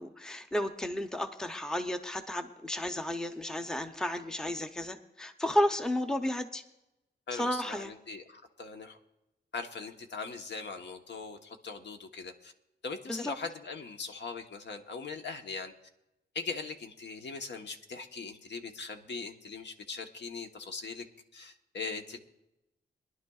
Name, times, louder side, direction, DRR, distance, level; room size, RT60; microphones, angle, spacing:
voice 1, 0.0-6.6 7.3-7.9 13.1-13.3, left 1 dB, 5° left, 7 dB, 0.6 m, -32 dB
voice 2, 7.3-9.0 9.5-12.5 12.8-15.7 16.3-21.0 21.3-22.2, left 4 dB, 70° left, 5 dB, 1.1 m, -40 dB
23.0 x 11.0 x 2.4 m, 0.90 s
wide cardioid pair, 135°, 19 cm